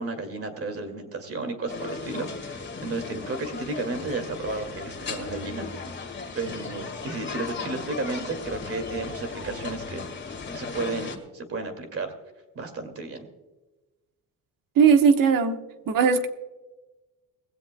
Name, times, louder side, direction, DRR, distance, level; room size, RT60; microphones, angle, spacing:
voice 1, 0.0-5.7 6.3-10.1 10.5-12.1 12.6-13.3, right 3 dB, 40° right, 6 dB, 2.3 m, -33 dB
sound 1, 1.7-11.2, left 4 dB, 30° left, 1.8 m, -36 dB
voice 2, 14.8-15.6 15.9-16.3, right 6 dB, 70° right, 7 dB, 1.2 m, -18 dB
19.5 x 16.0 x 2.2 m, 1.1 s
cardioid pair, 125°, 34 cm